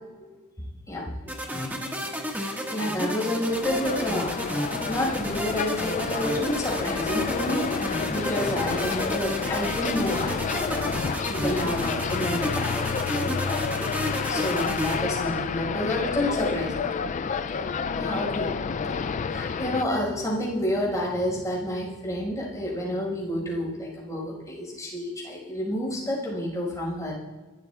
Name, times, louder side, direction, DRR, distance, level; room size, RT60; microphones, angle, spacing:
voice 1, 0.9-1.7 2.3-4.3 4.9-11.0 11.3-17.6 17.9-27.2, left 1 dB, 15° left, -4 dB, 5.4 m, -30 dB
sound 1, 1.3-15.0, equal, 10° right, 1.7 m, -32 dB
sound 2, 3.5-19.8, left 5 dB, 35° left, 0.3 m, -30 dB
29.0 x 13.0 x 2.4 m, 1.2 s
head